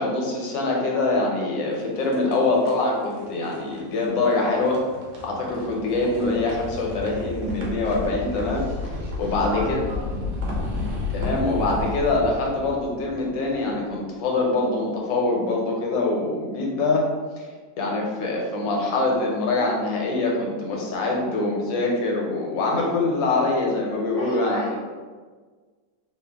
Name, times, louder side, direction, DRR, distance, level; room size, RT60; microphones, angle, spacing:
voice 1, 0.0-4.8 5.2-8.7 9.2-9.8 11.1-17.0 17.4-17.5 17.8-24.8, left 2 dB, 80° left, -1 dB, 1.4 m, -24 dB
sound 1, 1.7-13.8, left 2 dB, 80° right, 1.5 m, -32 dB
voice 2, 9.2-10.0 24.2-24.8, equal, 40° right, -8 dB, 1.5 m, -35 dB
3.6 x 2.5 x 3.4 m, 1.5 s
omnidirectional pair, 2.0 m